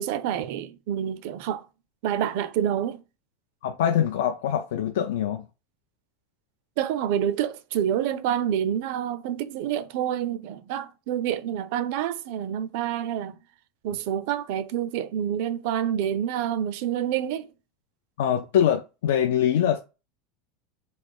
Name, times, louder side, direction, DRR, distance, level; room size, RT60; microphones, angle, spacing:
voice 1, 0.0-1.7 2.0-3.0 6.8-13.4 13.8-17.5, right 10 dB, 55° right, 0.4 m, -27 dB
voice 2, 3.6-5.4 18.2-19.8, left 9 dB, 85° left, 0.4 m, -23 dB
3.2 x 2.4 x 4.4 m
supercardioid pair, 165°, 0 cm